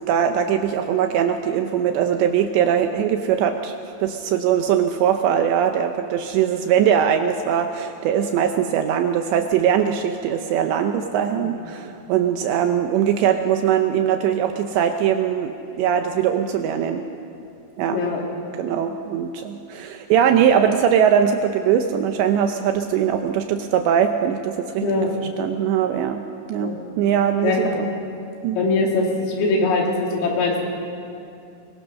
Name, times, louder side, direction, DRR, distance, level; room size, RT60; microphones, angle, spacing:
voice 1, 0.0-3.7 4.0-17.1 17.8-18.0 18.6-24.8 25.4-26.2 26.5-27.9 28.4-28.6, right 8 dB, 80° right, 6 dB, 2.6 m, -21 dB
voice 2, 17.9-18.2 24.8-25.1 26.6-26.8 27.4-27.6 28.6-30.6, left 3 dB, 85° left, -1 dB, 5.5 m, -21 dB
22.5 x 22.5 x 6.3 m, 2.6 s
omnidirectional pair, 5.8 m